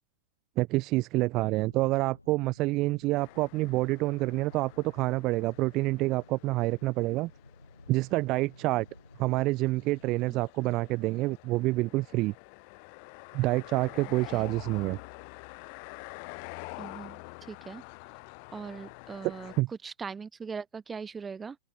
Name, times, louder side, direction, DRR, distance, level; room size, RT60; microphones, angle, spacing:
voice 1, 0.6-7.3 7.9-8.9 9.2-12.3 13.3-15.0 19.6-19.7, right 20 dB, 40° right, 0.4 m, -27 dB
sound 1, 1.4-10.3, left 2 dB, 85° left, 4.4 m, -56 dB
sound 2, 3.2-19.6, left 40 dB or more, 45° left, 2.0 m, -48 dB
voice 2, 16.8-17.8 18.5-21.6, right 5 dB, 15° right, 3.3 m, -40 dB
open air
figure-of-eight pair, 95°, 0 cm